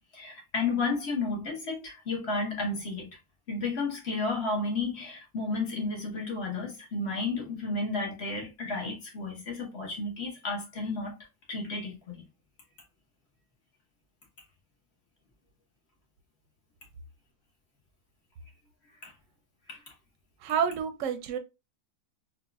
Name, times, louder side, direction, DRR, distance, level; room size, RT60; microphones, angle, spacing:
voice 1, 0.1-3.1 3.5-11.1 11.5-12.0 19.7-19.8, left 3 dB, 45° left, 1.3 m, -32 dB
voice 2, 20.4-21.4, right 7 dB, 70° right, 0.9 m, -29 dB
4.2 x 2.4 x 2.2 m
omnidirectional pair, 1.6 m